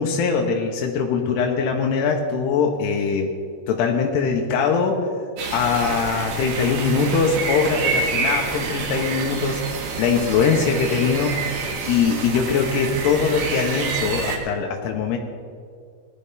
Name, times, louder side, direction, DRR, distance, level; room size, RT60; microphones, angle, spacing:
voice 1, 0.0-3.3 3.7-5.0 5.5-11.5 11.9-15.2, left 5 dB, 90° left, 1 dB, 3.0 m, -22 dB
sound 1, 5.4-14.4, right 4 dB, 70° right, 3.3 m, -27 dB
18.5 x 11.5 x 3.6 m, 2.1 s
omnidirectional pair, 4.8 m